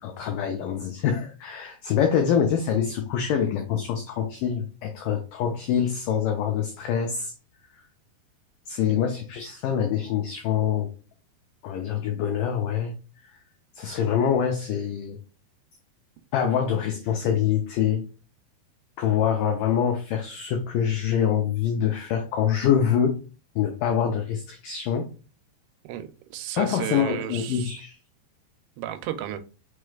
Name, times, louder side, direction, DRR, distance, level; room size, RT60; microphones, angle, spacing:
voice 1, 0.0-7.3 8.7-10.9 11.6-12.9 13.2-13.3 13.8-15.2 16.3-18.0 19.0-23.2 23.6-25.1 26.6-28.0, left 8 dB, 90° left, 1.9 m, -25 dB
voice 2, 25.9-27.7 28.8-29.4, right 12 dB, 85° right, 2.6 m, -33 dB
5.9 x 3.2 x 2.3 m
omnidirectional pair, 4.6 m